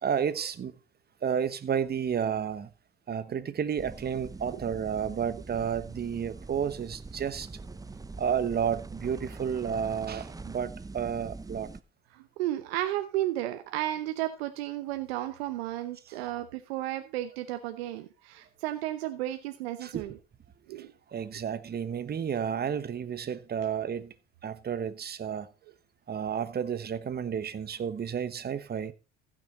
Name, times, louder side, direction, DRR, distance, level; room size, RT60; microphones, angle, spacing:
voice 1, 0.0-0.7 1.2-2.7 3.1-7.5 8.2-11.7 19.8-20.1 20.8-24.1 24.4-25.5 26.1-28.9, right 7 dB, 30° right, 1.1 m, -31 dB
sound 1, 3.8-11.8, right 3 dB, 10° right, 0.7 m, -43 dB
voice 2, 12.1-20.1 20.7-20.9, right 14 dB, 80° right, 0.9 m, -33 dB
15.0 x 6.5 x 4.1 m
hypercardioid pair, 75°, 30 cm